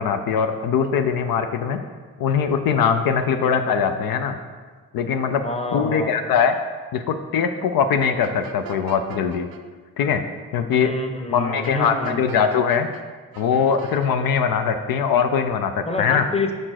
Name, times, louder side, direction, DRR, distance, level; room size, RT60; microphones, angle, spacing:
voice 1, 0.0-1.8 2.2-4.4 4.9-5.4 5.7-6.6 6.9-9.5 10.0-10.2 10.5-10.9 11.3-12.9 13.4-16.2, left 6 dB, 75° left, 7 dB, 0.5 m, -21 dB
voice 2, 5.4-6.2 10.8-12.3 15.8-16.5, left 3 dB, 15° left, 5 dB, 0.8 m, -27 dB
sound 1, 8.2-9.6 11.6-13.0 13.3-14.1, right 7 dB, 75° right, 0.6 m, -41 dB
4.9 x 4.4 x 5.8 m, 1.5 s
supercardioid pair, 50°, 35 cm